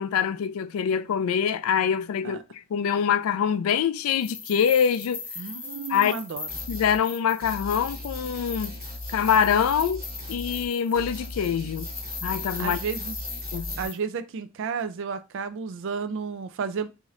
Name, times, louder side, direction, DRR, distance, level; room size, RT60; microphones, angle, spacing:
voice 1, 0.0-2.4 2.7-5.2 5.9-6.1 6.7-8.7 9.1-10.0 10.3-11.9 12.2-12.8 13.5-13.8, left 8 dB, 90° left, 0.3 m, -24 dB
sound 1, 4.1-13.9, left 4 dB, 10° left, 0.5 m, -39 dB
voice 2, 5.4-6.5 12.6-13.2 13.8-16.9, right 5 dB, 65° right, 0.4 m, -32 dB
sound 2, 6.5-7.0 7.4-10.7 10.9-13.9, left 1 dB, 45° right, 1.2 m, -39 dB
3.0 x 2.7 x 2.4 m
head